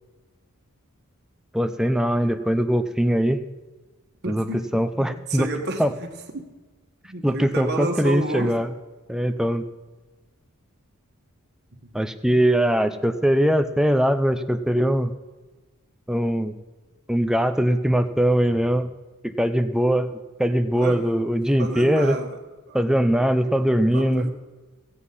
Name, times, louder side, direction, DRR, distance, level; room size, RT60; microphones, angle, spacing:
voice 1, 1.5-3.4 4.3-4.4 4.7-5.5 5.8-5.9 7.2-8.7 9.1-9.7 11.9-15.1 16.1-16.6 17.1-18.9 19.2-22.2 22.7-24.3, equal, 5° right, 9 dB, 0.6 m, -21 dB
voice 2, 4.2-5.8 6.3-6.4 7.0-8.6 11.8-11.9 20.8-21.1 21.6-22.4 22.7-22.8 23.2-23.6 23.9-24.3, right 2 dB, 50° right, 4 dB, 1.6 m, -31 dB
16.5 x 8.3 x 5.6 m, 1.2 s
head